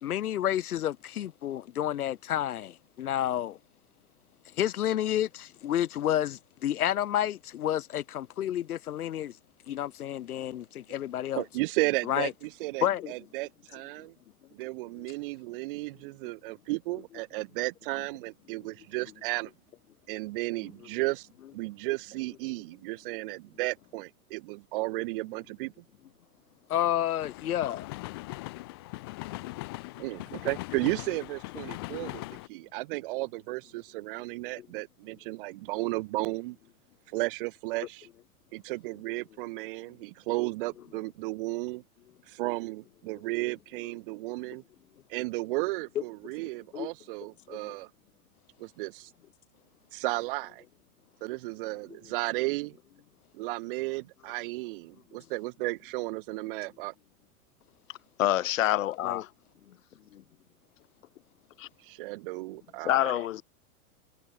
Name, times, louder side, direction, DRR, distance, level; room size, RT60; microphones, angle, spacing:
voice 1, 0.0-3.6 4.6-9.3 9.7-11.4 12.1-12.3 12.8-13.1 26.7-27.9 46.7-46.9 47.5-47.6 59.0-59.2 60.1-60.2, left 11 dB, 75° left, 4.8 m, -30 dB
voice 2, 11.4-14.1 14.5-19.5 20.1-21.3 21.5-25.7 30.0-32.2 32.5-36.6 37.1-38.1 38.5-41.8 42.3-44.6 45.1-47.9 48.6-49.1 49.9-50.6 51.2-52.8 53.3-56.9 61.8-63.1, right 22 dB, 35° right, 4.0 m, -34 dB
sound 1, 27.2-32.5, left 22 dB, 15° left, 0.6 m, -40 dB
voice 3, 58.2-59.3 61.6-61.7 62.8-63.4, left 13 dB, 60° left, 2.1 m, -26 dB
supercardioid pair, 180°, 44 cm